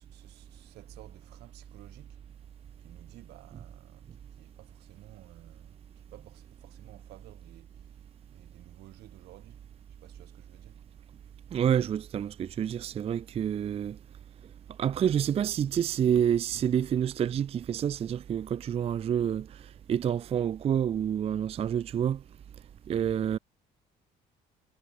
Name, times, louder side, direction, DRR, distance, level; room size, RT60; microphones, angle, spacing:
voice 1, 0.0-2.2 2.8-5.8 6.1-8.0 8.3-9.6 10.0-10.8, right 16 dB, 80° right, 3.2 m, -54 dB
voice 2, 11.5-14.0 14.8-19.6 19.9-22.2 22.9-23.4, right 9 dB, 35° right, 0.4 m, -28 dB
cardioid pair, 110°, 17 cm